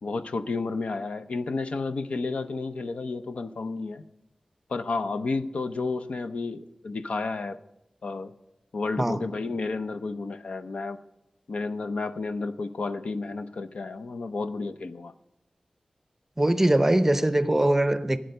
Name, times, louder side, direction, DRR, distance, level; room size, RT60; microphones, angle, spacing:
voice 1, 0.0-4.0 4.7-7.6 8.0-8.3 8.7-11.0 11.5-15.1, left 3 dB, 85° left, 0.7 m, -31 dB
voice 2, 16.4-18.2, right 1 dB, 15° right, 0.7 m, -22 dB
12.0 x 9.1 x 6.6 m
wide cardioid pair, 85°, 2 cm